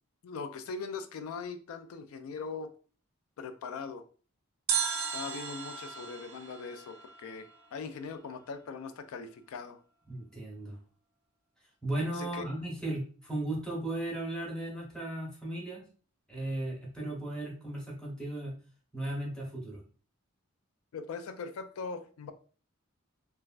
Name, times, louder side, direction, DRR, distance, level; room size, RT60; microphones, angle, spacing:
voice 1, 0.2-2.7 3.4-4.0 5.1-9.8 12.1-12.4 20.9-22.3, left 5 dB, 90° left, 9 dB, 0.3 m, -40 dB
sound 1, 4.7-7.8 8.0-8.1, right 7 dB, 80° right, 0.4 m, -35 dB
voice 2, 10.1-10.8 11.8-15.8 16.3-18.5 18.9-19.8, right 1 dB, 5° left, -4 dB, 0.8 m, -36 dB
3.2 x 2.2 x 2.4 m, 0.40 s
head